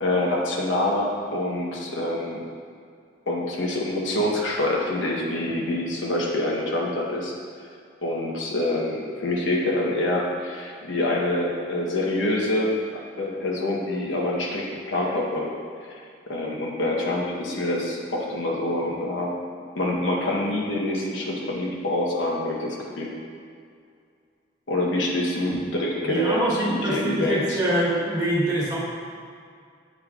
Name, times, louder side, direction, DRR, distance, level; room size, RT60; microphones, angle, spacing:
voice 1, 0.0-2.4 3.3-7.3 8.0-12.7 13.2-15.5 15.9-16.0 16.3-19.3 19.8-23.1 24.7-27.6, left 1 dB, 85° left, -2 dB, 1.0 m, -26 dB
voice 2, 26.1-28.8, right 1 dB, 20° right, -6 dB, 1.2 m, -24 dB
8.8 x 5.1 x 2.4 m, 2.3 s
head